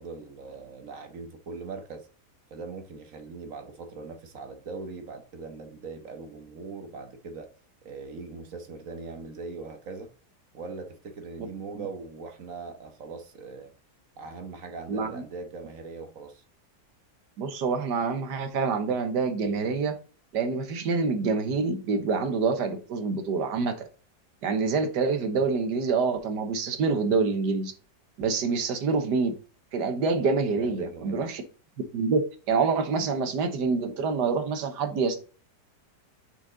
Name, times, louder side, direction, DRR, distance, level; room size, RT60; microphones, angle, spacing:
voice 1, 0.0-2.1 2.5-7.5 7.8-10.1 10.5-13.7 14.2-16.4 30.5-31.3, right 4 dB, 55° right, 1.4 m, -40 dB
voice 2, 14.9-15.2 17.4-20.0 20.3-23.7 24.4-27.7 28.2-29.3 29.7-31.4 31.9-35.2, right 4 dB, 80° right, 1.7 m, -26 dB
6.3 x 5.1 x 3.9 m
omnidirectional pair, 1.8 m